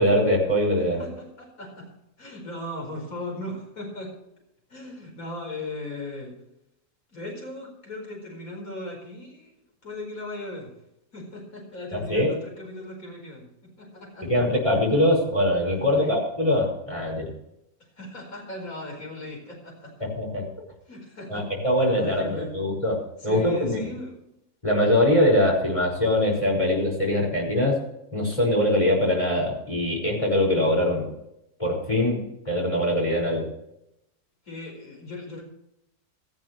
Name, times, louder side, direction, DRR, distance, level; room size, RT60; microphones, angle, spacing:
voice 1, 0.0-1.0 11.9-12.3 14.2-17.3 20.0-20.5 21.3-23.8 24.6-27.8 28.1-31.1 31.6-33.5, left 1 dB, 20° left, -1 dB, 5.9 m, -23 dB
voice 2, 0.8-1.9 2.2-4.1 4.7-6.4 7.1-9.5 9.8-10.7 11.1-13.5 13.8-14.3 15.9-16.2 18.0-19.9 20.9-21.5 21.9-22.5 23.2-24.2 34.5-35.4, left 1 dB, 65° left, 0 dB, 5.3 m, -37 dB
17.5 x 14.5 x 3.2 m, 0.81 s
omnidirectional pair, 1.6 m